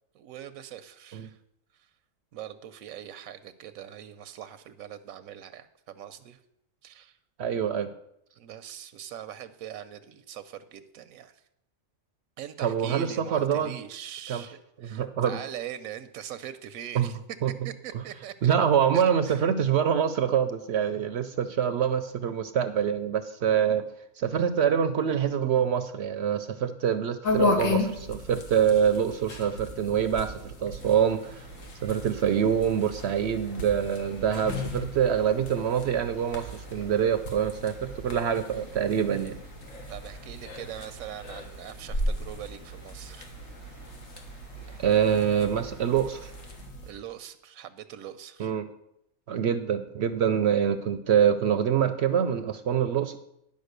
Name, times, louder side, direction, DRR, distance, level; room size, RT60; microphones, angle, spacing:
voice 1, 0.1-1.4 1.7-1.9 2.3-6.4 6.8-7.2 8.3-11.4 12.4-17.2 17.6-18.5 18.9-19.5 39.9-43.3 46.8-48.5, right 10 dB, 85° right, 12 dB, 1.0 m, -42 dB
voice 2, 7.4-7.9 12.6-13.7 14.3-14.4 14.8-15.4 16.9-17.1 17.4-17.5 18.4-23.9 24.2-31.4 31.8-39.3 44.8-46.3 48.4-48.7 49.3-53.2, right 8 dB, 65° right, 11 dB, 0.7 m, -25 dB
sound 1, 27.2-46.9, left 2 dB, 75° left, 1.7 m, -35 dB
sound 2, 30.8-46.6, left 1 dB, 55° left, 4.9 m, -54 dB
10.5 x 5.3 x 6.6 m, 0.79 s
omnidirectional pair, 1.4 m